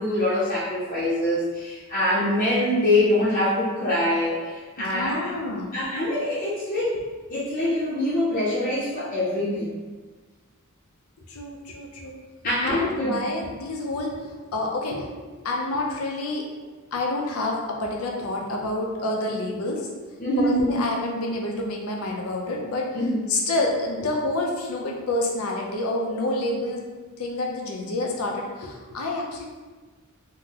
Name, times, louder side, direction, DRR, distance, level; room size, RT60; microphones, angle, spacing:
voice 1, 0.0-5.3 5.7-7.0 7.3-9.7 12.4-13.1 20.2-20.8 22.9-23.2, left 1 dB, 40° left, -9 dB, 0.6 m, -24 dB
voice 2, 4.8-5.7 11.3-12.1 12.6-15.1 15.4-16.4 16.9-19.9 20.4-22.9 23.3-26.8 27.2-29.4, left 2 dB, 90° left, 0 dB, 0.6 m, -28 dB
3.7 x 2.1 x 2.8 m, 1.4 s
head